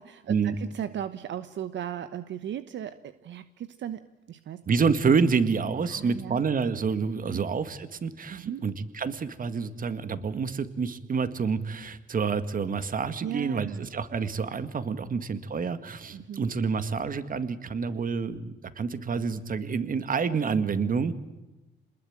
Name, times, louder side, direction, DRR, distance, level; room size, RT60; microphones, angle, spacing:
voice 1, 0.0-4.6 5.8-6.4 7.3-7.5 8.3-8.6 13.2-13.9 15.0-15.2 16.1-16.5, right 9 dB, 65° right, 12 dB, 1.1 m, -37 dB
voice 2, 4.7-21.1, right 5 dB, 45° right, 12 dB, 1.9 m, -28 dB
27.0 x 20.5 x 8.8 m, 0.99 s
cardioid pair, 90°, 20 cm